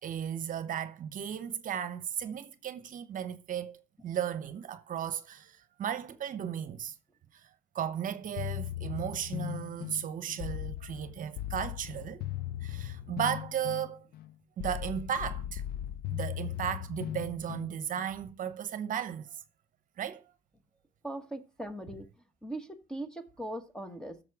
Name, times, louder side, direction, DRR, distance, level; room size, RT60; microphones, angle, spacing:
voice 1, 0.0-6.9 7.3-7.5 7.7-12.2 12.6-14.1 14.6-15.6 16.1-19.4 20.0-20.2, right 9 dB, 50° right, 0.9 m, -35 dB
sound 1, 8.4-18.1, left 13 dB, 65° left, 0.5 m, -38 dB
voice 2, 21.0-22.1 22.4-24.2, right 1 dB, 5° left, 1.3 m, -40 dB
14.5 x 6.7 x 4.8 m
cardioid pair, 110°, 17 cm